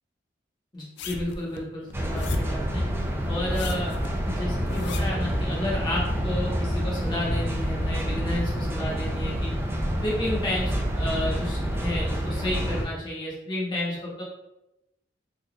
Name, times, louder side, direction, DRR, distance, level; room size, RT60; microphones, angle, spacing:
voice 1, 0.7-2.8 3.3-3.9 4.2-9.5 10.0-14.2, left 1 dB, 25° left, -5 dB, 1.0 m, -31 dB
sound 1, 1.0-2.6 3.4-5.3 6.0-6.1, left 4 dB, 65° left, 0.3 m, -37 dB
sound 2, 1.9-12.9, equal, 15° right, 0.4 m, -27 dB
3.8 x 2.6 x 2.3 m, 0.89 s
head